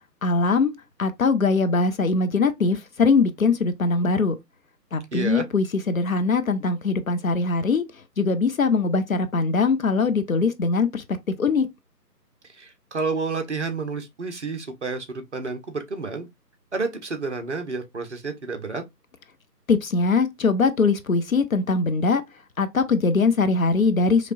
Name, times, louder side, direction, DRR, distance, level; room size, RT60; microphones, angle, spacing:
voice 1, 0.2-0.7 1.0-4.4 4.9-7.8 8.2-11.0 11.4-11.7 19.7-22.2 22.6-24.3, left 4 dB, 55° left, 0.6 m, -21 dB
voice 2, 5.1-5.4 12.5-16.3 16.7-18.8, right 4 dB, 45° right, 0.7 m, -30 dB
4.0 x 2.9 x 2.5 m
figure-of-eight pair, 150°, 49 cm